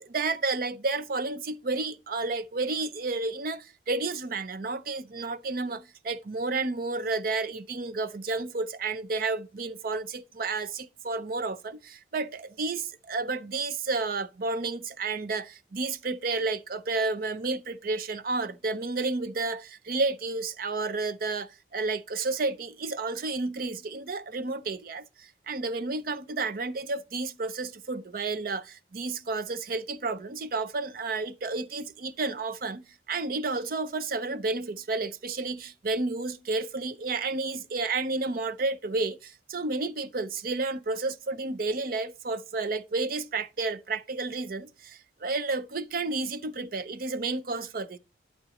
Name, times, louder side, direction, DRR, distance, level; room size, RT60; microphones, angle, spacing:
voice 1, 0.0-48.0, right 3 dB, 50° right, 0.5 m, -31 dB
12.0 x 6.5 x 3.0 m
head